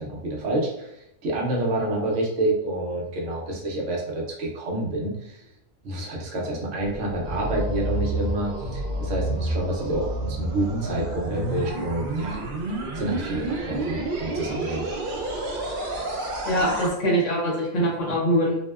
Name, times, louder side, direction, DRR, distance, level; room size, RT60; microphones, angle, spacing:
voice 1, 0.0-5.4 5.8-12.4 12.9-14.9, right 1 dB, 70° right, -2 dB, 0.9 m, -28 dB
sound 1, 6.8-16.9, right 1 dB, 90° right, 0.4 m, -29 dB
voice 2, 16.5-18.6, equal, 65° left, -4 dB, 1.1 m, -23 dB
2.7 x 2.0 x 2.2 m, 0.83 s
omnidirectional pair, 1.4 m